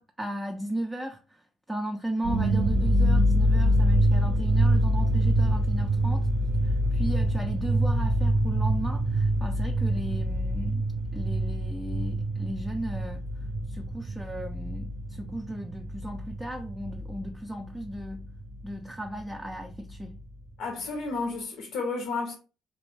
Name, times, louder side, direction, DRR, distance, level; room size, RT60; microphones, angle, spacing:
voice 1, 0.0-1.4 1.7-6.3 6.6-10.9 11.1-13.2 13.7-18.3 18.6-20.2, right 1 dB, 10° right, 0.4 m, -35 dB
sound 1, 2.2-17.3 17.6-18.7 19.1-19.2 19.5-20.2, right 1 dB, 60° right, 0.5 m, -25 dB
voice 2, 20.6-22.3, left 3 dB, 70° left, 0.6 m, -31 dB
2.4 x 2.0 x 3.1 m
supercardioid pair, 70°, 0 cm